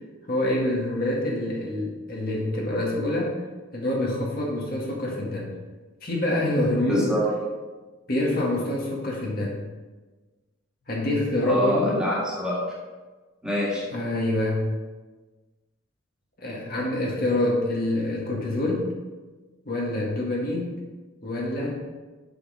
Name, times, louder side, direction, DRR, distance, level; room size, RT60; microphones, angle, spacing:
voice 1, 0.3-3.4 3.7-5.5 6.0-7.1 8.1-9.6 10.9-12.0 13.9-14.7 16.4-18.9 19.6-20.7 21.2-21.8, left 1 dB, 50° left, -3 dB, 1.8 m, -26 dB
voice 2, 6.9-7.3 11.4-12.6 13.4-13.8, equal, 5° right, -6 dB, 2.0 m, -25 dB
7.8 x 6.2 x 4.9 m, 1.3 s
head